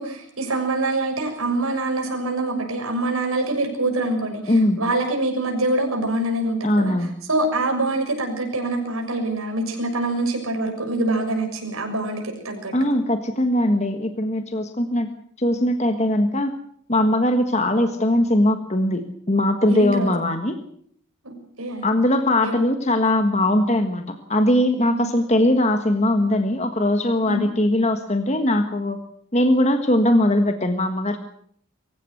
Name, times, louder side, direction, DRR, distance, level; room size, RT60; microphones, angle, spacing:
voice 1, 0.0-6.9 7.3-12.7 19.7-20.1 21.2-21.8 22.4-22.6 24.8-25.1 27.3-27.5, right 2 dB, 80° right, 3 dB, 6.6 m, -25 dB
voice 2, 4.5-4.8 6.6-7.1 12.7-15.1 15.4-16.5 16.9-20.6 21.8-29.0 29.3-31.2, left 1 dB, 30° left, 7 dB, 1.5 m, -20 dB
24.0 x 15.5 x 8.0 m, 0.64 s
head